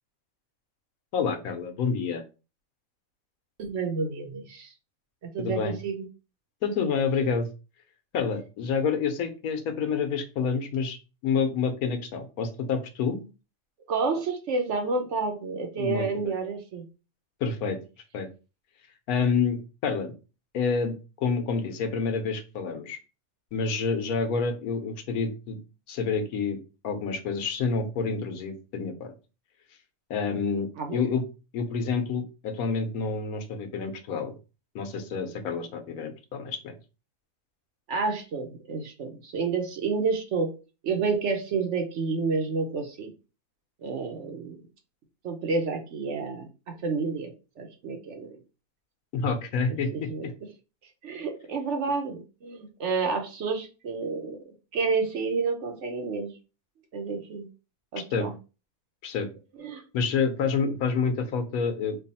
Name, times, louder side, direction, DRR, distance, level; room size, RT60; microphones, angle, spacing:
voice 1, 1.1-2.2 5.4-5.8 6.6-7.5 8.1-11.0 11.2-13.2 15.8-16.3 17.4-17.8 18.1-18.3 19.1-20.1 20.5-23.0 23.5-25.6 25.9-26.6 26.8-29.1 30.1-31.2 31.5-34.4 34.7-36.7 49.1-50.3 58.0-58.3 59.0-59.3 59.9-62.0, left 5 dB, 90° left, 7 dB, 1.2 m, -28 dB
voice 2, 3.6-4.7 5.3-6.1 13.9-16.8 30.8-31.0 37.9-40.6 40.8-43.1 43.8-44.6 45.2-48.4 49.7-50.3 51.0-54.4 54.7-56.3 56.9-57.5 57.9-58.3 59.6-59.8, right 4 dB, 60° right, 4 dB, 1.0 m, -30 dB
3.3 x 2.3 x 4.0 m, 0.32 s
omnidirectional pair, 1.5 m